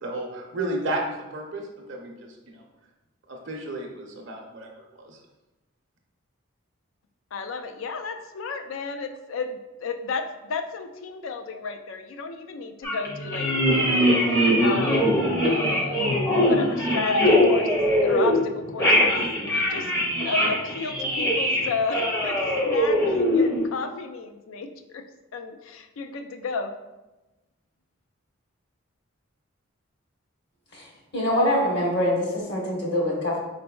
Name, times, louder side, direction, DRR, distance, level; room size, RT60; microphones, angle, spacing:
voice 1, 0.0-2.6 3.3-5.2, right 1 dB, 60° right, 1 dB, 0.6 m, -33 dB
voice 2, 7.3-14.2 14.6-16.0 16.4-19.9 20.2-25.0 25.3-26.7, left 4 dB, 70° left, 7 dB, 0.4 m, -33 dB
sound 1, 12.8-18.4 18.6-23.6, equal, 15° left, 0.6 m, -22 dB
voice 3, 31.1-33.4, left 1 dB, 50° left, -2 dB, 1.1 m, -24 dB
4.2 x 4.0 x 2.3 m, 1.1 s
head